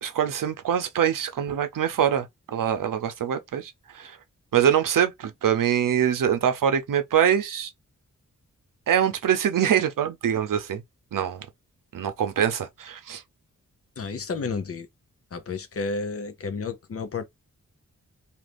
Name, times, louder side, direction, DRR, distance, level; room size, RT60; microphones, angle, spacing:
voice 1, 0.0-4.2 4.5-7.7 8.9-10.8 11.1-11.5 11.9-13.2, right 9 dB, 85° right, 0.7 m, -24 dB
voice 2, 14.0-14.9 15.3-17.2, left 4 dB, 45° left, 0.6 m, -31 dB
2.8 x 2.6 x 3.3 m
wide cardioid pair, 175°, 32 cm